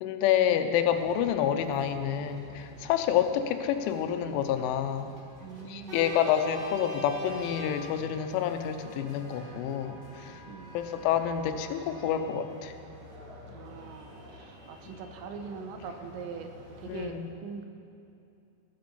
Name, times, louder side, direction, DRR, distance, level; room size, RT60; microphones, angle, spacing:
voice 1, 0.0-5.1 5.7-10.3 10.7-12.7 16.9-17.3, left 9 dB, 90° left, 8 dB, 3.2 m, -28 dB
sound 1, 0.8-17.0, right 1 dB, 45° right, 1.3 m, -46 dB
voice 2, 5.4-6.1 10.5-10.8 13.5-16.5 16.8-17.6, right 5 dB, 85° right, 6 dB, 3.0 m, -42 dB
15.0 x 7.8 x 7.0 m, 2.7 s
omnidirectional pair, 5.4 m